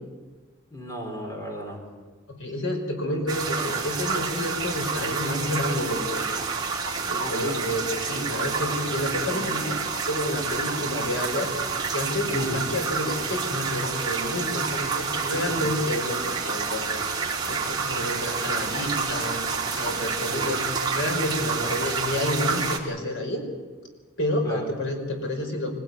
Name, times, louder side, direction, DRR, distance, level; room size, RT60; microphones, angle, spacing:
voice 1, 0.7-1.8 7.1-7.7 12.3-12.7 15.3-15.7 20.2-20.6 24.4-24.7, equal, 15° left, 2 dB, 3.9 m, -34 dB
voice 2, 2.3-6.5 7.1-11.5 11.9-16.9 17.5-19.4 19.8-23.4 24.2-25.7, left 1 dB, 65° left, 3 dB, 5.4 m, -29 dB
sound 1, 3.3-22.8, right 5 dB, 20° right, 3.4 m, -29 dB
24.5 x 17.5 x 9.4 m, 1.4 s
head